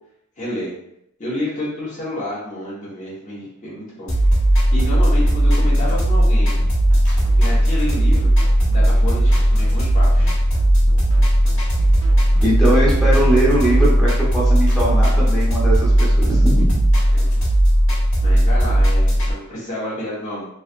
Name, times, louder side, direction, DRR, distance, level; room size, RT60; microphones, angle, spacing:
voice 1, 0.4-0.7 1.2-4.1 4.7-6.6 7.4-8.3 8.7-10.3 17.1-17.3 18.2-20.5, left 1 dB, 35° left, -8 dB, 1.2 m, -29 dB
sound 1, 4.1-19.3, equal, 85° left, 1.3 m, -16 dB
sound 2, 6.6-13.9, right 2 dB, 70° right, 0.4 m, -37 dB
voice 2, 12.4-16.9, right 1 dB, ahead, -7 dB, 0.9 m, -21 dB
3.3 x 2.4 x 2.5 m, 0.76 s
head